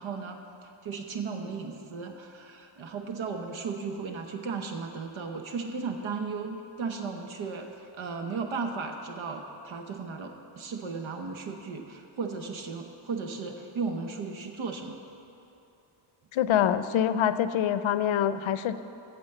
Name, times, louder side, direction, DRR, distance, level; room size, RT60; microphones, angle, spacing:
voice 1, 0.0-15.0, right 4 dB, 75° right, 4 dB, 1.0 m, -35 dB
voice 2, 16.3-18.8, left 9 dB, 75° left, 13 dB, 0.6 m, -25 dB
8.9 x 7.1 x 7.9 m, 2.7 s
cardioid pair, 85°, 48 cm